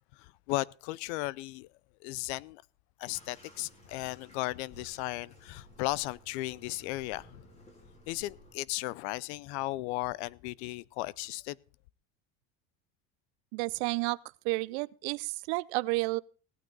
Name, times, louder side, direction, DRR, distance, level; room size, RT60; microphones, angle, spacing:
voice 1, 0.1-1.7 2.0-2.6 3.0-7.4 8.1-11.6, left 19 dB, 85° left, 0.6 m, -36 dB
Bathtub (filling or washing), 3.1-8.5, equal, 20° left, 2.5 m, -57 dB
voice 2, 13.5-14.2 14.4-16.2, right 24 dB, 80° right, 0.6 m, -31 dB
17.0 x 9.2 x 3.9 m
cardioid pair, 180°, 33 cm